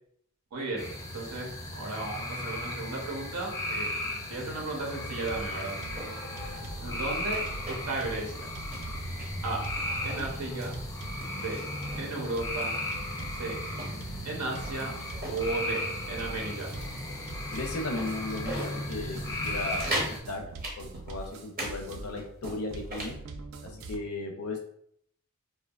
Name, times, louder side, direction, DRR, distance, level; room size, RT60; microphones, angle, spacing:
voice 1, 0.5-0.9 1.1-3.9 4.3-5.8 6.8-7.4 7.7-8.4 9.4-9.6 10.0-10.7 11.3-11.6 12.0-12.7 13.4-13.6 14.2-14.9 15.3-16.7, right 2 dB, 90° right, -1 dB, 0.7 m, -34 dB
sound 1, 0.8-20.2, left 1 dB, 15° left, 0.3 m, -36 dB
sound 2, 4.9-11.6 11.8-12.1 12.3-24.0, right 2 dB, 65° right, 0.3 m, -43 dB
sound 3, 5.6-6.1 6.5-6.6 7.0-8.0 8.3-8.4 8.7-9.4 9.9-10.7 11.2-12.1 12.7-12.8 13.2-15.4 15.8-16.0 16.4-17.1 17.5-17.6 18.0-18.7 19.1-19.2 19.5-20.2 20.6-21.7 22.0-23.2, right 1 dB, 40° right, 0.7 m, -39 dB
voice 2, 17.5-19.2 19.4-20.0 20.3-20.4 20.8-23.1 23.6-24.6, left 2 dB, 70° left, 2 dB, 0.5 m, -35 dB
2.7 x 2.2 x 2.3 m, 0.68 s
head